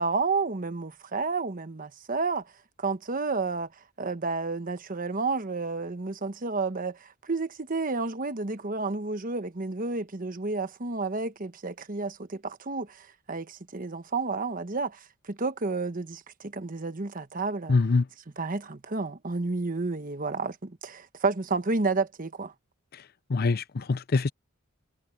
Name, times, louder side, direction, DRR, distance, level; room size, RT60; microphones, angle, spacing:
voice 1, 0.0-2.5 2.8-3.7 4.0-17.8 18.4-22.5, right 3 dB, 40° right, 1.1 m, -31 dB
voice 2, 17.7-18.0 23.3-24.3, left 3 dB, 50° left, 0.6 m, -24 dB
head